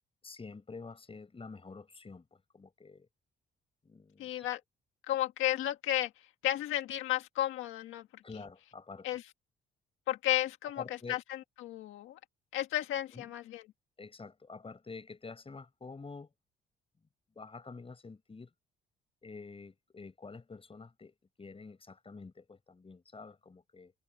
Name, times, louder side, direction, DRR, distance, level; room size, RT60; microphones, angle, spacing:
voice 1, 0.2-3.1 3.8-4.5 8.2-9.2 10.8-11.2 13.1-13.3 14.0-16.3 17.4-18.5 19.2-23.9, left 4 dB, 30° left, 7.6 m, -48 dB
voice 2, 4.2-4.6 5.1-6.1 6.4-8.1 9.0-9.2 10.1-10.8 11.1-12.2 12.5-13.6, left 14 dB, 85° left, 1.6 m, -33 dB
cardioid pair, 90°, 20 cm